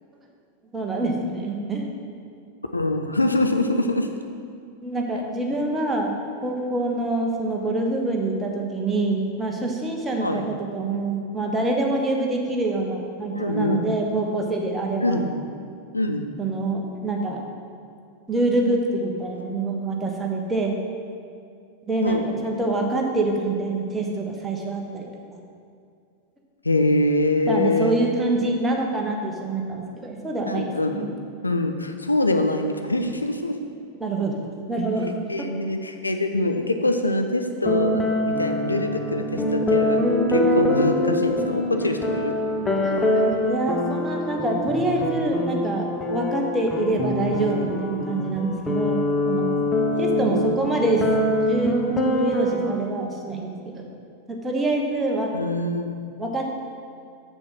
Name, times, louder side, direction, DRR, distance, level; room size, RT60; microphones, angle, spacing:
voice 1, 0.7-1.9 4.8-6.1 6.4-15.3 16.4-17.4 18.3-20.8 21.9-25.1 27.5-30.7 30.9-31.1 34.0-34.3 34.7-35.1 35.4-35.5 40.5-40.6 42.8-49.6 50.0-51.7 52.0-53.8 54.3-55.3 56.2-56.5, right 2 dB, 10° right, 0 dB, 1.2 m, -25 dB
voice 2, 2.7-4.2 10.2-10.5 13.3-13.9 15.0-15.3 15.9-16.3 22.0-22.3 26.6-28.0 30.5-31.1 31.4-33.6 35.3-40.0 40.3-42.4 49.9-50.6 55.3-56.0, left 2 dB, 80° left, 6 dB, 0.5 m, -24 dB
sound 1, 37.6-52.7, left 1 dB, 15° left, 0.9 m, -24 dB
6.7 x 6.3 x 5.7 m, 2.4 s
figure-of-eight pair, 90°, 0 cm